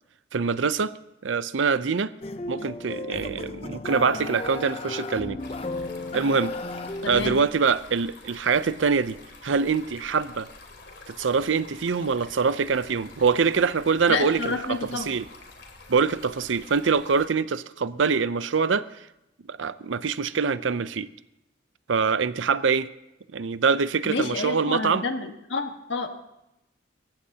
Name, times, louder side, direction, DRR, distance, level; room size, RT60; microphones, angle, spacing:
voice 1, 0.3-0.9 1.2-2.1 2.5-5.4 6.1-6.5 7.0-9.2 9.4-10.5 11.1-15.2 15.9-18.9 19.5-21.1 21.9-22.9 23.3-25.0, right 5 dB, 90° right, 15 dB, 0.6 m, -24 dB
sound 1, 2.2-7.4, left 2 dB, 30° left, 0.5 m, -34 dB
Stream, 5.4-17.3, left 3 dB, 60° left, 2.5 m, -47 dB
voice 2, 7.0-7.4 14.1-15.1 24.0-26.1, left 4 dB, 80° left, 5 dB, 1.5 m, -29 dB
26.0 x 15.0 x 2.9 m, 0.88 s
head